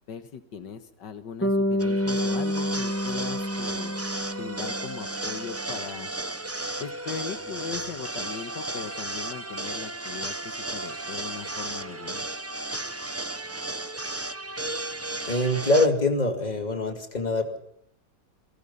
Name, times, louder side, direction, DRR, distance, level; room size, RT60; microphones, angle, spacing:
voice 1, 0.1-4.0 4.4-6.1 6.8-12.3, left 7 dB, 80° left, 10 dB, 2.0 m, -39 dB
Bass guitar, 1.4-5.5, left 1 dB, 5° left, 1.6 m, -28 dB
sound 1, 1.8-15.9, right 2 dB, 20° right, 0.4 m, -34 dB
voice 2, 15.3-17.6, left 2 dB, 25° left, 5 dB, 2.6 m, -24 dB
27.0 x 19.5 x 5.6 m, 0.69 s
omnidirectional pair, 1.9 m